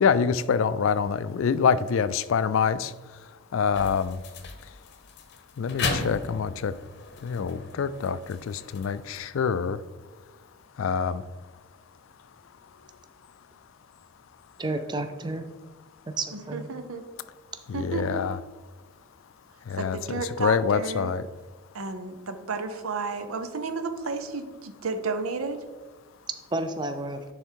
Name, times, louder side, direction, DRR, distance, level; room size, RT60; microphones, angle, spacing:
voice 1, 0.0-2.9 3.5-4.2 5.6-6.7 7.2-9.8 10.8-11.2 17.7-18.4 19.7-21.3, left 6 dB, 70° left, 15 dB, 0.4 m, -25 dB
sound 1, 3.7-9.2, left 3 dB, 50° left, 0.8 m, -36 dB
voice 2, 14.6-15.5 16.2-16.7 26.5-27.2, right 2 dB, 20° right, 8 dB, 0.5 m, -31 dB
voice 3, 16.3-17.0 17.7-18.2 19.8-21.1 21.7-25.6, right 4 dB, 85° right, 8 dB, 0.7 m, -32 dB
10.0 x 3.6 x 4.5 m, 1.4 s
head